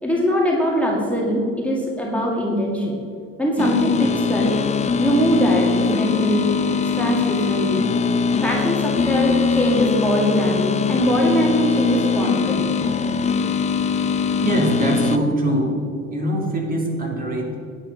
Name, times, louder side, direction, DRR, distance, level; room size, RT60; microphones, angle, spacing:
voice 1, 0.0-3.0 3.4-4.6 5.0-6.6 7.0-7.9 8.4-12.7, equal, 5° left, -4 dB, 2.0 m, -22 dB
sound 1, 3.6-15.2, left 5 dB, 20° left, 0.5 m, -21 dB
voice 2, 14.4-15.8 16.1-17.5, right 1 dB, 25° right, 0 dB, 2.5 m, -22 dB
10.0 x 8.5 x 5.6 m, 2.4 s
cardioid pair, 120°, 31 cm